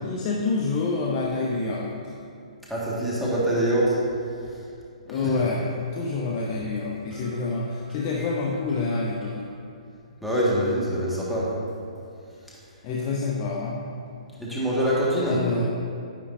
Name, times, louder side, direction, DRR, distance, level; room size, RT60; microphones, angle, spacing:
voice 1, 0.0-2.0 5.1-9.4 12.8-13.9 15.2-15.6, left 3 dB, 35° left, -2 dB, 0.9 m, -27 dB
voice 2, 2.7-4.0 4.4-4.6 5.1-5.3 7.1-8.3 9.2-9.3 10.2-11.5 12.5-12.6 14.4-15.4, equal, ahead, -8 dB, 1.8 m, -26 dB
9.9 x 9.8 x 2.7 m, 2.4 s
hypercardioid pair, 130°, 4 cm